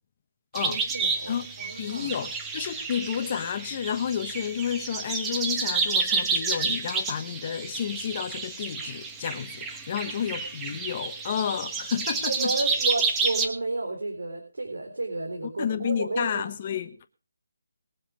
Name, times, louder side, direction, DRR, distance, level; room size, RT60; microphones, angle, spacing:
sound 1, 0.5-13.5, right 4 dB, 10° right, 1.2 m, -30 dB
voice 1, 0.7-2.1 12.3-16.5, right 2 dB, 90° right, 3.7 m, -32 dB
voice 2, 1.8-12.5 15.6-17.0, left 8 dB, 30° left, 1.1 m, -31 dB
21.5 x 7.4 x 5.0 m
hypercardioid pair, 170°, 0 cm